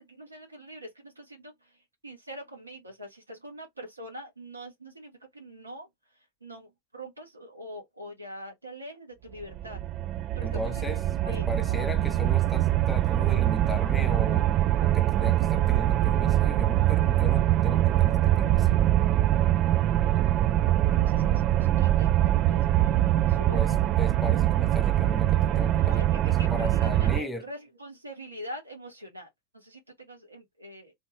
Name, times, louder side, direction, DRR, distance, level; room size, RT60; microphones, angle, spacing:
voice 1, 0.0-1.7 2.0-5.9 6.4-9.8 10.4-10.8 11.2-11.9 20.9-23.6 25.8-29.3 29.5-30.9, equal, 80° right, 1.3 m, -44 dB
sound 1, 9.4-27.2, right 13 dB, 35° right, 0.3 m, -23 dB
voice 2, 10.4-14.5 14.8-18.8 23.5-27.5, left 1 dB, 5° left, 0.7 m, -37 dB
2.7 x 2.6 x 3.2 m
figure-of-eight pair, 90°, 0 cm